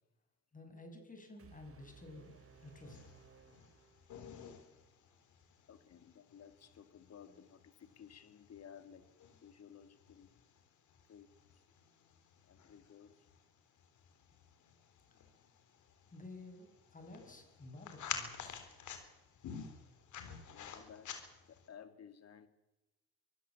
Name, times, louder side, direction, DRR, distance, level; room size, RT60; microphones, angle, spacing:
voice 1, 0.5-2.4 2.6-3.0 16.1-18.6, left 2 dB, 25° left, 5 dB, 6.2 m, -52 dB
sound 1, 1.4-4.5, right 5 dB, 45° right, 2.7 m, -62 dB
sound 2, 2.3-21.7, left 7 dB, 75° left, 3.8 m, -51 dB
voice 2, 5.7-9.1 9.4-10.3 11.1-11.3 12.4-13.2 20.5-21.2 21.5-22.5, left 8 dB, 55° left, 10 dB, 2.5 m, -56 dB
24.5 x 15.5 x 7.3 m, 1.0 s
cardioid pair, 90°, 30 cm